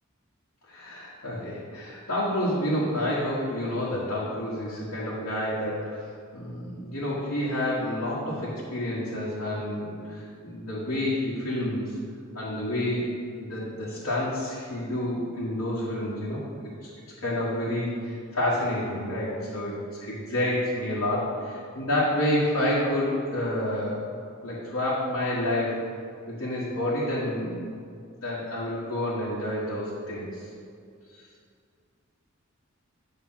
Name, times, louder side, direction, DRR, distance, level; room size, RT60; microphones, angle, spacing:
voice 1, 0.7-6.0 6.3-11.9 12.3-13.1 13.4-16.9 17.2-24.0 24.4-25.8 26.3-27.7 28.2-30.5 31.1-31.2, left 1 dB, 90° left, -9 dB, 1.5 m, -29 dB
9.0 x 3.3 x 6.1 m, 2.3 s
head